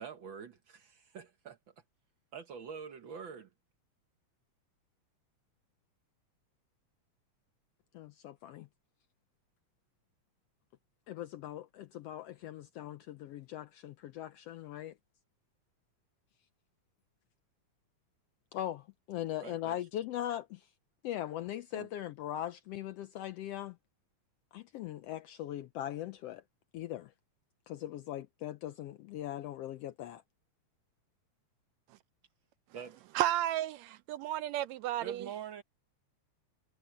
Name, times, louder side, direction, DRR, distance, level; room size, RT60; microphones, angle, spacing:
voice 1, 0.0-1.6 2.3-3.5 19.4-19.8 21.7-21.9 32.7-33.0 35.0-35.6, right 7 dB, 55° right, 1.5 m, -45 dB
voice 2, 7.9-8.7 11.1-14.9 18.5-20.7 21.0-23.8 24.5-26.4 26.7-27.1 27.7-30.2, left 12 dB, 80° left, 1.4 m, -40 dB
voice 3, 33.2-35.3, right 13 dB, 80° right, 1.7 m, -32 dB
omnidirectional pair, 3.3 m